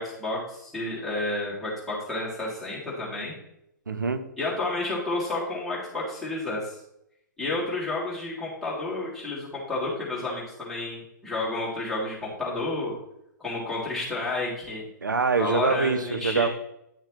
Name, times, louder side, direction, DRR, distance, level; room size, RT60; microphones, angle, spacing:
voice 1, 0.0-3.4 4.4-6.8 7.4-12.9 13.4-14.8 15.3-16.5, left 2 dB, ahead, -8 dB, 3.1 m, -31 dB
voice 2, 3.9-4.2 15.0-16.5, right 4 dB, 70° right, 9 dB, 0.8 m, -24 dB
10.0 x 6.3 x 3.3 m, 0.79 s
figure-of-eight pair, 115°, 10 cm